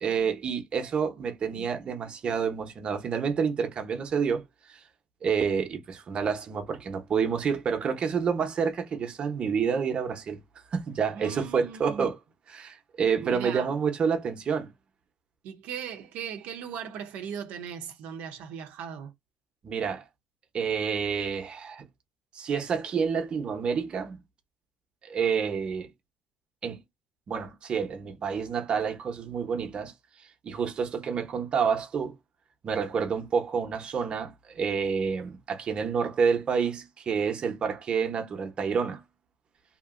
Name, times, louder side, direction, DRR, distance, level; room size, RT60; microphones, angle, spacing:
voice 1, 0.0-4.4 4.7-4.8 5.2-10.4 10.7-12.2 12.5-14.7 19.6-20.0 20.5-21.9 22.3-24.2 25.0-25.9 26.6-26.8 27.3-29.9 30.4-32.1 32.6-39.0, right 6 dB, 40° right, 0.9 m, -28 dB
voice 2, 11.1-12.1 13.2-13.7 15.4-19.1, right 7 dB, 90° right, 0.6 m, -38 dB
2.8 x 2.7 x 2.5 m
cardioid pair, 130°, 3 cm